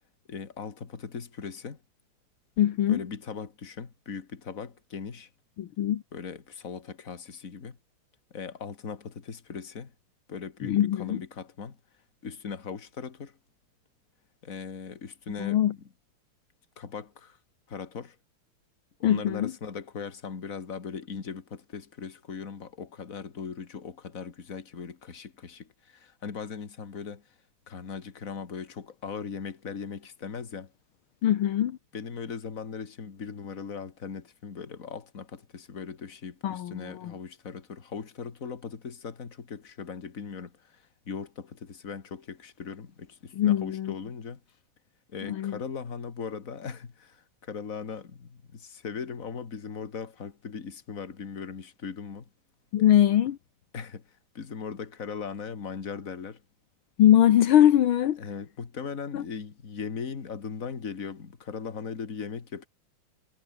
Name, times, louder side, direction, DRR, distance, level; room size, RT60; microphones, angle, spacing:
voice 1, 0.3-1.8 2.9-5.3 6.1-7.8 8.3-9.9 10.3-11.8 12.2-13.4 14.4-15.9 16.8-17.4 17.7-18.2 19.0-27.2 27.7-30.7 31.9-44.4 45.1-52.3 53.7-56.4 58.2-62.7, left 6 dB, 40° left, 2.3 m, -39 dB
voice 2, 2.6-3.0 5.6-6.0 10.6-11.2 15.4-15.7 19.0-19.5 31.2-31.8 36.4-37.1 43.3-43.9 45.2-45.6 52.7-53.4 57.0-58.2 59.1-59.2, left 11 dB, 75° left, 1.9 m, -22 dB
omnidirectional pair, 2.3 m